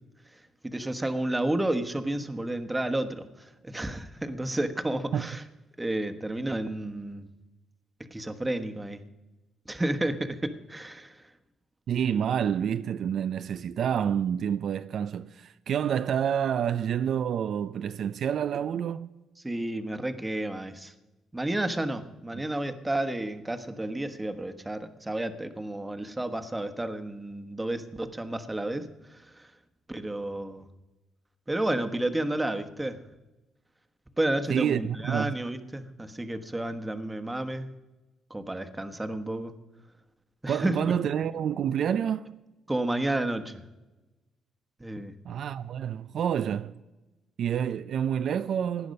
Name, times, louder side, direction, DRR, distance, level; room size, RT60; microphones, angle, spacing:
voice 1, 0.6-5.4 5.8-7.3 8.1-9.0 9.7-11.3 19.4-20.9 21.3-29.5 29.9-30.7 31.5-33.0 34.2-37.7 38.3-39.5 40.4-40.8 42.7-43.6 44.8-45.1, right 1 dB, 15° right, 1.2 m, -31 dB
voice 2, 11.9-19.1 22.3-22.4 34.5-35.4 40.5-42.3 45.2-46.8 47.4-48.9, right 8 dB, 65° right, 0.4 m, -28 dB
17.0 x 10.5 x 5.3 m
cardioid pair, 90°, 0 cm